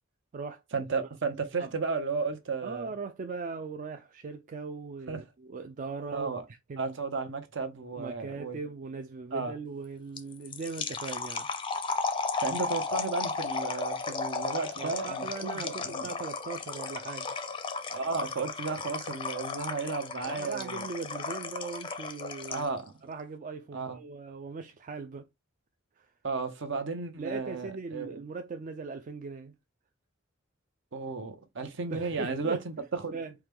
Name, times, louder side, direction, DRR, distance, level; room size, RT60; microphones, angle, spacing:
voice 1, 0.7-2.9 5.1-5.2 6.1-6.4 6.8-8.6 9.3-9.5 12.4-16.1 17.9-20.8 22.5-22.9 23.7-24.0 26.2-28.1 30.9-33.2, right 4 dB, 65° right, 0.8 m, -34 dB
voice 2, 2.6-6.4 6.7-7.0 7.9-11.5 14.8-17.3 20.3-22.7 23.0-25.3 26.0-26.1 27.2-29.6 31.9-32.8 33.1-33.3, right 4 dB, 40° right, 0.3 m, -39 dB
sound 1, 10.2-22.8, left 4 dB, 25° left, 0.5 m, -35 dB
4.7 x 2.2 x 3.4 m
head